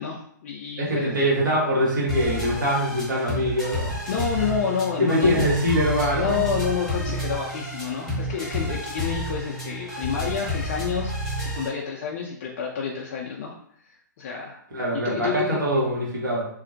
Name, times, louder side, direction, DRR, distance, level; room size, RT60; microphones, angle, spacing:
voice 1, 0.0-1.1 4.1-5.5 5.9-13.6 13.8-14.6 14.9-15.6, left 6 dB, 40° left, -2 dB, 0.3 m, -29 dB
voice 2, 0.8-3.9 5.0-6.4 14.7-16.4, equal, 70° right, -4 dB, 1.1 m, -23 dB
sound 1, 2.1-11.7, equal, ahead, 0.7 m, -30 dB
2.5 x 2.0 x 2.6 m, 0.66 s
figure-of-eight pair, 125°, 10 cm